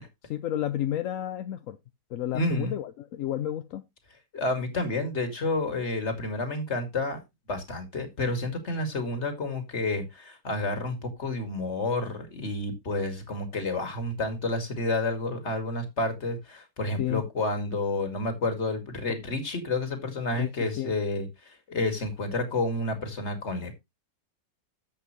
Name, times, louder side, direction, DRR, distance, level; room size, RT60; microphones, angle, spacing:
voice 1, 0.2-1.8 2.1-3.8 17.0-17.2 20.3-21.0, left 12 dB, 65° left, 1.0 m, -31 dB
voice 2, 2.3-2.7 4.3-7.2 7.5-23.7, left 2 dB, 45° left, 2.4 m, -30 dB
11.0 x 7.7 x 3.0 m
omnidirectional pair, 1.7 m